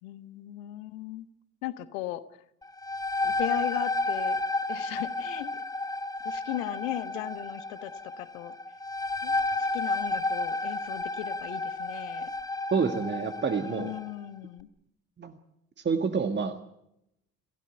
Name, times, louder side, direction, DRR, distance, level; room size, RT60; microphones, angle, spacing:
voice 1, 0.0-1.2 1.6-2.2 3.2-4.4 4.7-5.5 6.2-8.5 9.2-9.3 9.7-12.3 13.6-14.7, left 15 dB, 60° left, 14 dB, 1.3 m, -37 dB
sound 1, 2.6-14.1, left 2 dB, 10° left, 3.5 m, -32 dB
voice 2, 12.7-13.9 15.2-15.3 15.8-16.6, right 5 dB, 25° right, 7 dB, 1.6 m, -28 dB
28.5 x 16.0 x 8.1 m, 0.82 s
figure-of-eight pair, 55°, 44 cm